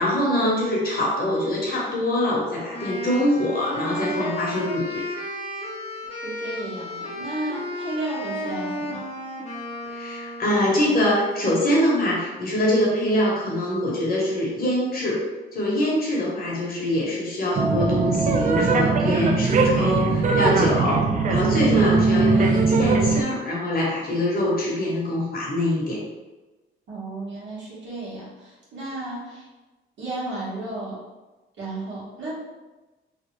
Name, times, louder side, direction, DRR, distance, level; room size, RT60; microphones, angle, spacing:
voice 1, 0.0-5.0 9.9-15.3 15.5-26.0, left 1 dB, 50° left, -4 dB, 1.2 m, -24 dB
Wind instrument woodwind instrument, 2.7-10.8, left 1 dB, 35° left, 0.8 m, -33 dB
voice 2, 6.1-9.1 26.9-29.5 30.0-31.0 31.6-32.3, right 2 dB, 65° right, -7 dB, 1.5 m, -33 dB
sound 1, 17.5-23.2, right 4 dB, 40° right, 0.4 m, -20 dB
3.2 x 2.4 x 3.1 m, 1.1 s
cardioid pair, 90°, 20 cm